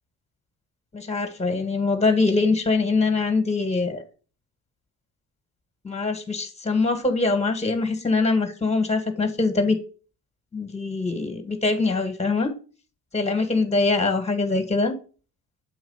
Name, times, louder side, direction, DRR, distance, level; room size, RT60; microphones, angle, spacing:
voice 1, 0.9-4.0 5.8-9.8 10.5-12.5 13.1-14.9, left 3 dB, 15° left, 8 dB, 1.5 m, -23 dB
7.8 x 2.8 x 5.5 m, 0.37 s
supercardioid pair, 75°, 37 cm